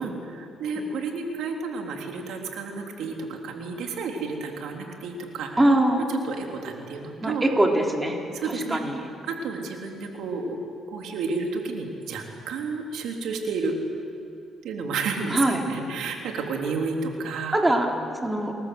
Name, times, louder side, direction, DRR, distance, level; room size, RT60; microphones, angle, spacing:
voice 1, 0.0-5.7 6.1-7.5 8.3-8.8 9.3-10.6 10.9-13.8 14.6-17.6 18.2-18.4, right 4 dB, 80° right, 2 dB, 3.5 m, -31 dB
voice 2, 5.6-6.0 7.2-8.2 8.7-9.0 15.3-15.6 17.5-17.9 18.2-18.5, right 1 dB, 15° right, 1 dB, 3.7 m, -22 dB
28.5 x 21.5 x 7.9 m, 2.8 s
cardioid pair, 90°, 0 cm